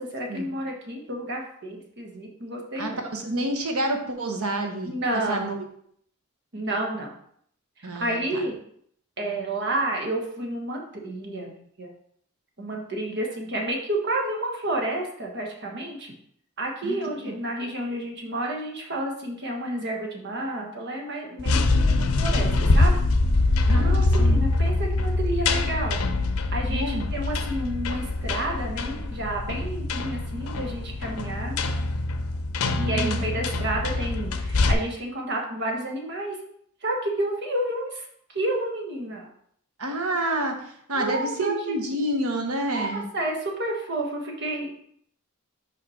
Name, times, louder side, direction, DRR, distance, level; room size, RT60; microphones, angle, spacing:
voice 1, 0.0-3.0 4.8-5.5 6.5-7.1 7.8-8.6 9.2-11.9 12.6-16.1 16.6-23.0 23.7-26.0 26.5-31.6 32.8-36.4 36.8-39.3 40.9-41.7 42.7-44.8, right 1 dB, 55° right, 1 dB, 1.3 m, -30 dB
voice 2, 2.8-5.6 7.8-8.4 16.8-17.4 23.7-24.4 26.7-27.0 32.9-33.2 39.8-43.1, right 1 dB, 80° right, 3 dB, 1.1 m, -29 dB
sound 1, 21.4-34.7, left 2 dB, 90° left, 0.6 m, -24 dB
5.5 x 5.1 x 4.2 m, 0.66 s
head